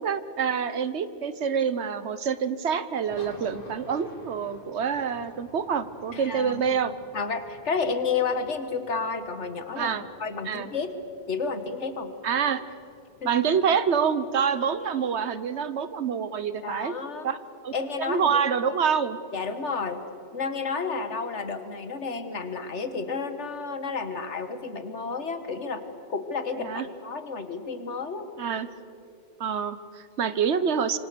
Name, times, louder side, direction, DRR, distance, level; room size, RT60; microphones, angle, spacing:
voice 1, 0.0-6.9 9.7-10.0 10.4-10.7 12.2-12.6 13.2-16.9 17.2-17.4 17.6-17.7 18.0-19.2 26.6-26.9 28.4-28.7 29.4-31.0, right 7 dB, 75° right, 14 dB, 1.3 m, -26 dB
sound 1, 3.1-15.2, left 1 dB, 50° left, 3.6 m, -51 dB
voice 2, 6.1-9.9 10.2-10.9 11.3-12.1 13.2-13.3 16.6-17.3 17.7-18.7 19.3-20.0 20.3-28.3, left 4 dB, 90° left, 9 dB, 1.9 m, -31 dB
26.5 x 24.5 x 6.9 m, 2.6 s
omnidirectional pair, 1.2 m